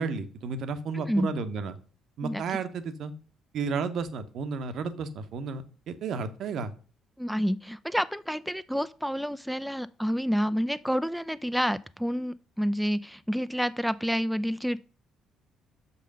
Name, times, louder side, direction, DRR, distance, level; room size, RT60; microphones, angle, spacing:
voice 1, 0.0-1.8 2.2-3.1 3.5-6.7, right 5 dB, 60° right, 0.9 m, -32 dB
voice 2, 7.2-14.8, equal, ahead, 0.4 m, -29 dB
6.3 x 5.4 x 5.3 m
hypercardioid pair, 45°, 0 cm